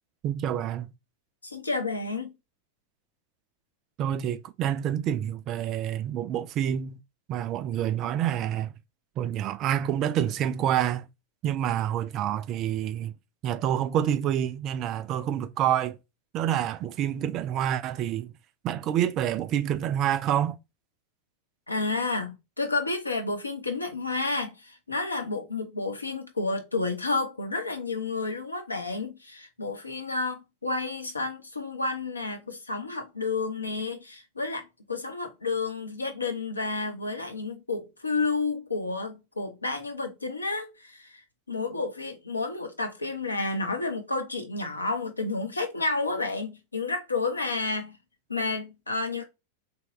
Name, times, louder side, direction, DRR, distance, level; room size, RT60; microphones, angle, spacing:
voice 1, 0.2-0.9 4.0-7.0 7.3-8.7 9.2-11.1 11.4-13.1 13.4-16.0 16.3-18.3 18.6-20.6, right 10 dB, 35° right, 0.3 m, -27 dB
voice 2, 1.4-2.3 21.7-41.2 41.5-48.0 48.3-49.2, left 3 dB, 80° left, 0.7 m, -31 dB
3.0 x 2.2 x 3.0 m
figure-of-eight pair, 90°, 0 cm